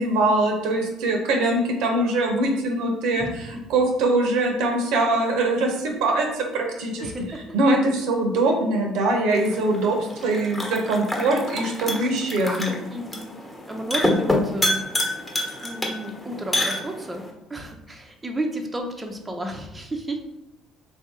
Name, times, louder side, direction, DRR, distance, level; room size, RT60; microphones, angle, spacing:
voice 1, 0.0-7.1 7.5-10.0 10.2-12.8, right 2 dB, 75° right, 2 dB, 0.8 m, -22 dB
voice 2, 7.0-7.4 12.9-13.2 13.7-14.8 15.6-17.2 17.5-20.2, right 1 dB, 20° right, 2 dB, 0.6 m, -32 dB
sound 1, 9.3-17.3, left 1 dB, 10° left, 1.1 m, -28 dB
3.9 x 2.7 x 3.6 m, 0.97 s
supercardioid pair, 80°, 0 cm